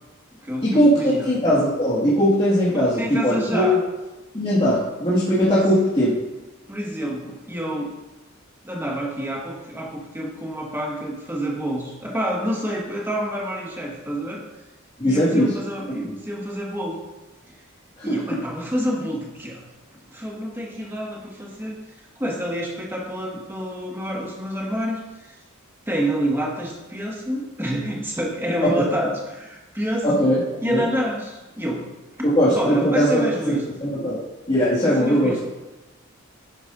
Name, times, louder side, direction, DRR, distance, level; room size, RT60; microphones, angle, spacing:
voice 1, 0.3-1.3 2.7-3.8 5.5-5.7 6.7-7.9 8.6-14.4 15.0-17.0 17.5-17.6 18.0-19.6 20.1-21.7 22.2-25.3 25.9-30.4 30.6-31.9 32.2-32.3 32.5-33.6 34.8-35.4, equal, 10° right, -3 dB, 1.9 m, -28 dB
voice 2, 1.3-3.8 4.3-6.1 15.0-15.5 16.0-16.1 18.1-18.2 28.6-28.7 30.0-30.4 30.7-30.8 32.2-33.2 34.0-34.2 34.5-35.4, equal, 25° left, -10 dB, 2.2 m, -19 dB
11.0 x 9.6 x 2.7 m, 1.1 s
head